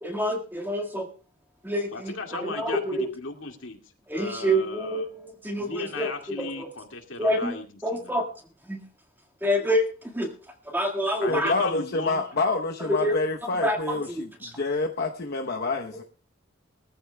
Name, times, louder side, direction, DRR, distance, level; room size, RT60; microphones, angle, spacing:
voice 1, 0.0-1.1 1.6-3.1 4.1-6.7 7.2-7.6 7.8-8.3 8.6-8.8 9.4-10.3 10.6-11.6 12.8-13.2 13.4-14.6, equal, 10° right, 2 dB, 1.8 m, -27 dB
voice 2, 1.9-2.8 3.2-3.8 4.1-5.0 5.5-7.6 8.0-8.1 11.2-12.2, left 3 dB, 70° left, 3 dB, 2.2 m, -36 dB
voice 3, 11.3-14.1 14.6-16.0, left 3 dB, 55° left, 2 dB, 0.9 m, -27 dB
22.0 x 14.5 x 2.3 m, 0.35 s
head